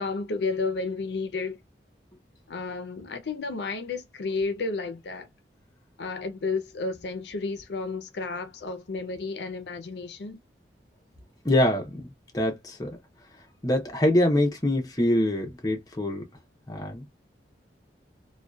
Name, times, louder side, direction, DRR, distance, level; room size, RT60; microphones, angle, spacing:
voice 1, 0.0-1.6 2.5-5.3 6.0-10.4, left 4 dB, 80° left, 0.5 m, -32 dB
voice 2, 11.4-13.0 13.6-16.2 16.7-17.0, left 1 dB, 20° left, 0.6 m, -25 dB
2.6 x 2.2 x 2.2 m
head